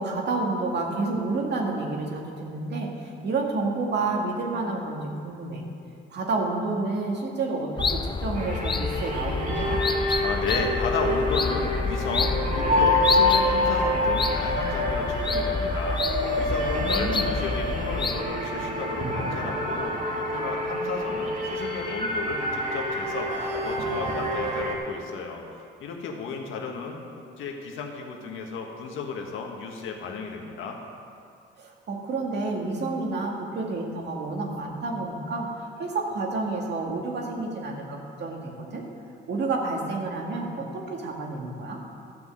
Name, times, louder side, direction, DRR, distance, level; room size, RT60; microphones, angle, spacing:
voice 1, 0.0-5.7 6.1-9.8 16.8-17.3 31.6-38.8 39.3-41.8, right 3 dB, 60° right, 0 dB, 2.2 m, -30 dB
sound 1, 7.8-18.2, left 4 dB, 25° left, 0.5 m, -29 dB
sound 2, 8.4-24.8, left 1 dB, 40° right, 2.2 m, -27 dB
voice 2, 10.2-25.4 25.8-27.0 27.4-30.8, left 5 dB, 85° left, 1 dB, 1.7 m, -33 dB
12.5 x 6.2 x 7.8 m, 2.4 s
cardioid pair, 90°, 20 cm